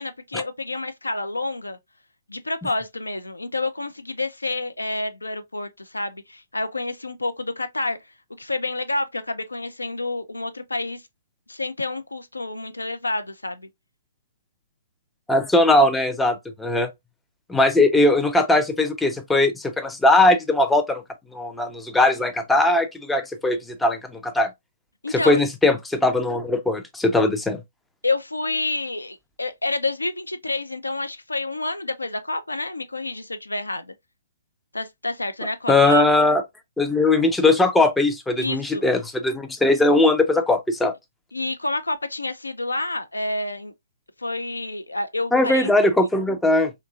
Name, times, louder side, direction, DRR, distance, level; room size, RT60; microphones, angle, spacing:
voice 1, 0.0-1.8 2.3-8.0 8.4-11.0 11.5-13.7 25.0-25.4 28.0-33.9 34.7-36.1 38.4-38.8 41.3-43.7 44.2-45.7, left 2 dB, 80° left, 0.4 m, -28 dB
voice 2, 15.3-16.9 17.5-21.0 21.3-24.5 25.1-27.6 35.7-36.4 36.8-40.9 45.3-46.7, left 2 dB, 5° left, 0.3 m, -19 dB
2.9 x 2.2 x 2.4 m
figure-of-eight pair, 130°, 0 cm